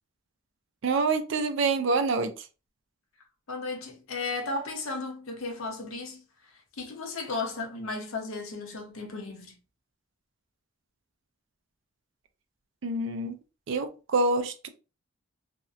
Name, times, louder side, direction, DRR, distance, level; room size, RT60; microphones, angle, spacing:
voice 1, 0.8-2.5 12.8-13.4 13.7-14.7, right 3 dB, 60° right, 0.4 m, -26 dB
voice 2, 3.5-6.2 6.8-9.6, left 3 dB, 75° left, 0.7 m, -35 dB
2.6 x 2.1 x 2.4 m
head